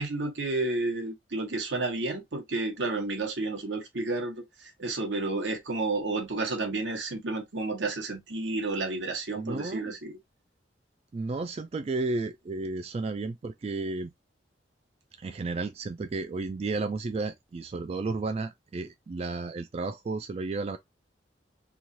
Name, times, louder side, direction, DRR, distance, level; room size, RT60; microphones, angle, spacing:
voice 1, 0.0-10.2, right 2 dB, 85° right, 1.0 m, -31 dB
voice 2, 9.4-10.0 11.1-14.1 15.2-20.8, right 3 dB, 35° right, 0.3 m, -33 dB
3.1 x 2.4 x 2.6 m
head